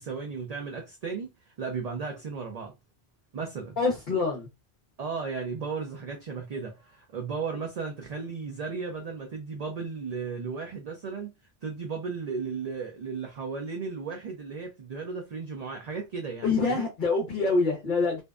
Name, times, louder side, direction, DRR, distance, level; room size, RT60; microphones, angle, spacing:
voice 1, 0.0-2.7 3.3-3.8 5.0-11.3 11.6-16.9, right 5 dB, 55° right, 0.4 m, -35 dB
voice 2, 3.8-4.5 16.4-18.2, left 4 dB, 50° left, 0.8 m, -25 dB
2.5 x 2.1 x 2.3 m
omnidirectional pair, 1.1 m